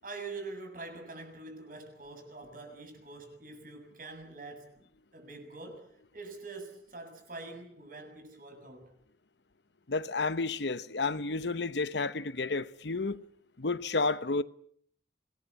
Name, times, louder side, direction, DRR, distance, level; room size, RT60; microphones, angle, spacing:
voice 1, 0.0-4.9 5.1-8.9, right 3 dB, 50° right, 7.0 m, -45 dB
voice 2, 9.9-13.2 13.6-14.4, left 3 dB, 70° left, 1.0 m, -31 dB
26.5 x 19.0 x 8.4 m
head